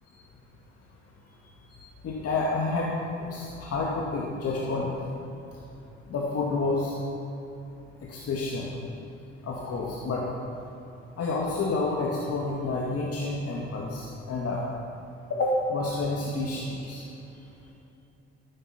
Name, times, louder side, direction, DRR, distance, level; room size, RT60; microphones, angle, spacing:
voice 1, 2.0-5.1 6.1-6.9 8.1-8.8 9.4-10.3 11.2-14.6 15.3-17.0, left 3 dB, 45° left, -3 dB, 2.0 m, -29 dB
14.0 x 14.0 x 4.3 m, 2.9 s
figure-of-eight pair, 50°, 33 cm